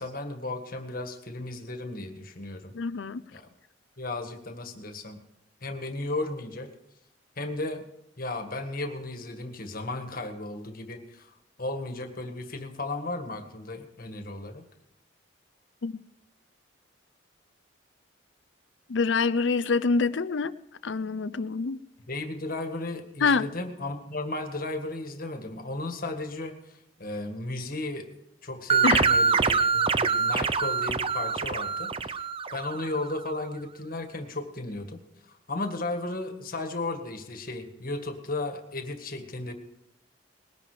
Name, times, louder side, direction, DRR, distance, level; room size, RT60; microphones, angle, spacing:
voice 1, 0.0-2.7 3.3-3.5 4.0-5.2 5.6-6.7 7.4-7.8 8.2-11.3 11.6-14.6 22.1-35.0 35.3-39.5, left 2 dB, 45° left, 6 dB, 1.8 m, -35 dB
voice 2, 2.7-3.2 15.8-16.0 18.9-20.5 20.8-21.8 23.2-23.4 28.8-29.1, left 4 dB, 70° left, 14 dB, 0.6 m, -26 dB
sound 1, 28.7-33.0, right 5 dB, 30° right, 0.5 m, -25 dB
20.0 x 10.5 x 5.0 m, 0.82 s
head